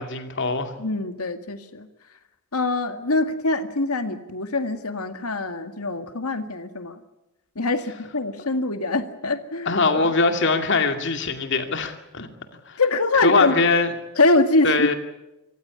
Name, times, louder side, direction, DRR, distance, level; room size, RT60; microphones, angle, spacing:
voice 1, 0.0-0.7 9.7-12.3 12.7-12.8 13.2-13.9 14.6-14.9, left 3 dB, 55° left, 6 dB, 2.4 m, -22 dB
voice 2, 0.8-1.9 2.5-7.0 7.6-9.7 10.0-10.1 12.8-13.6 14.2-14.9, left 2 dB, 85° left, 8 dB, 1.9 m, -23 dB
25.5 x 15.5 x 9.6 m, 0.97 s
head